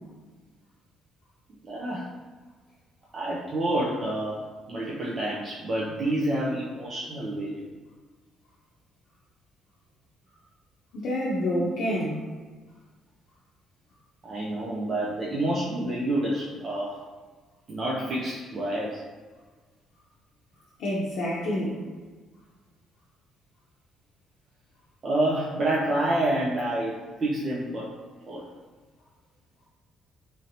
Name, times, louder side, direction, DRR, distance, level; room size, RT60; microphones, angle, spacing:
voice 1, 1.6-2.1 3.1-4.4 4.7-7.7 11.5-11.6 14.2-17.0 17.7-19.0 25.0-27.9 28.3-28.4, right 1 dB, 35° right, -6 dB, 0.5 m, -28 dB
voice 2, 10.9-12.2 20.8-21.8, left 1 dB, 70° left, -6 dB, 0.6 m, -28 dB
3.1 x 2.8 x 2.7 m, 1.4 s
cardioid pair, 130°, 0 cm